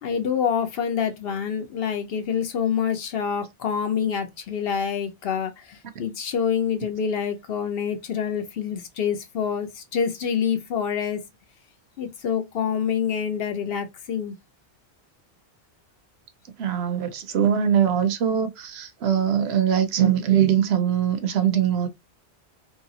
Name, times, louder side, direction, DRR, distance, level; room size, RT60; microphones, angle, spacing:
voice 1, 0.0-11.2 12.0-14.4, left 7 dB, 65° left, 0.8 m, -26 dB
voice 2, 16.6-21.9, right 9 dB, 70° right, 0.8 m, -22 dB
2.9 x 2.7 x 2.7 m
omnidirectional pair, 1.1 m